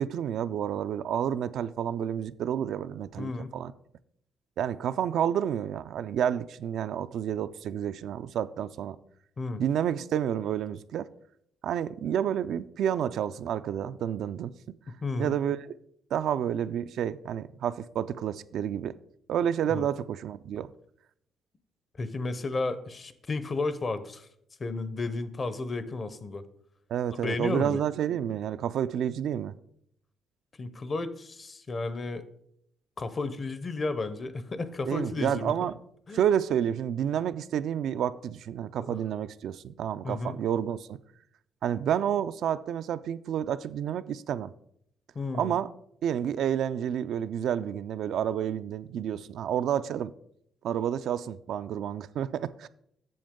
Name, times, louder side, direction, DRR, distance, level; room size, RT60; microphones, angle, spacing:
voice 1, 0.0-3.7 4.6-9.0 9.6-11.1 11.6-14.5 15.2-15.7 16.1-19.0 19.3-20.7 26.9-29.5 34.9-35.8 36.1-41.0 41.6-44.5 45.4-45.7 46.0-50.1 50.6-52.7, right 9 dB, 75° right, 0.3 m, -30 dB
voice 2, 3.2-3.5 9.4-9.6 14.9-15.4 19.7-19.9 22.0-24.3 24.6-26.4 27.2-27.8 30.6-32.3 33.0-35.5 36.1-36.2 38.7-39.0 40.0-40.4 45.1-45.5, left 3 dB, 35° left, 0.7 m, -33 dB
7.7 x 6.7 x 3.7 m
cardioid pair, 90°, 0 cm